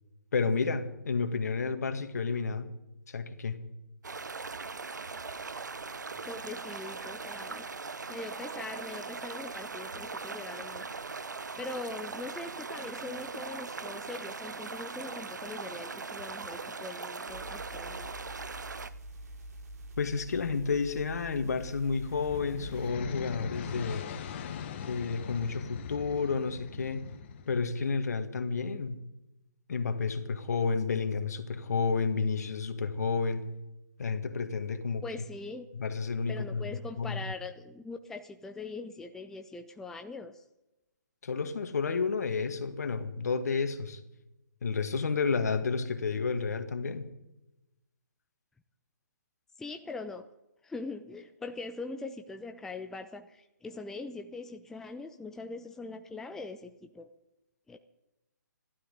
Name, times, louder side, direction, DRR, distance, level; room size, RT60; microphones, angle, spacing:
voice 1, 0.3-2.7 3.1-3.6 20.0-24.1 24.7-27.0 27.5-29.0 29.7-33.4 34.0-35.0 35.8-36.7 37.0-37.2 41.2-44.0 44.6-47.0, left 5 dB, 60° left, 7 dB, 2.0 m, -31 dB
sound 1, 4.0-18.9, right 4 dB, 75° right, 0.9 m, -40 dB
voice 2, 6.2-7.7 8.1-11.0 11.6-18.1 35.0-35.7 36.3-40.4 49.6-50.3 50.6-57.1 57.7-57.8, left 3 dB, 5° left, 6 dB, 0.6 m, -42 dB
sound 2, 17.3-22.9, right 1 dB, 60° right, 2.9 m, -46 dB
sound 3, 21.9-27.9, left 8 dB, 40° left, 1.4 m, -41 dB
26.5 x 12.5 x 4.0 m, 0.95 s
figure-of-eight pair, 135°, 10 cm